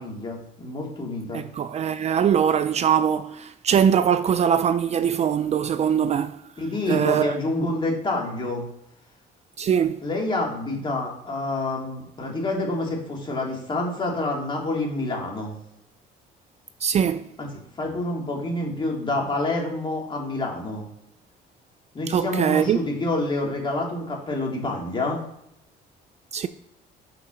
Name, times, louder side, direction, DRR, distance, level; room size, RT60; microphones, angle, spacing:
voice 1, 0.0-1.4 6.6-8.6 10.0-15.5 17.4-17.5 17.8-20.8 21.9-25.2, left 2 dB, 30° left, 3.0 m, -27 dB
voice 2, 1.3-6.4 6.9-7.4 9.6-10.0 16.8-17.3 22.1-22.8 26.3-26.5, right 8 dB, 40° right, 0.4 m, -22 dB
6.1 x 5.5 x 6.4 m
cardioid pair, 110°, 17 cm